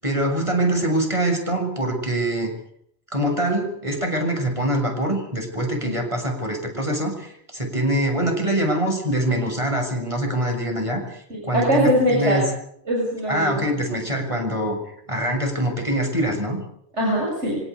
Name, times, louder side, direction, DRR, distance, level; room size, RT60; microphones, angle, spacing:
voice 1, 0.0-2.5 3.1-12.4 13.3-14.8 15.1-16.6, right 1 dB, 25° right, 3 dB, 7.4 m, -24 dB
voice 2, 11.3-12.4 12.9-13.6 17.0-17.6, equal, 80° right, -2 dB, 7.8 m, -21 dB
26.0 x 17.5 x 8.5 m, 0.68 s
omnidirectional pair, 1.2 m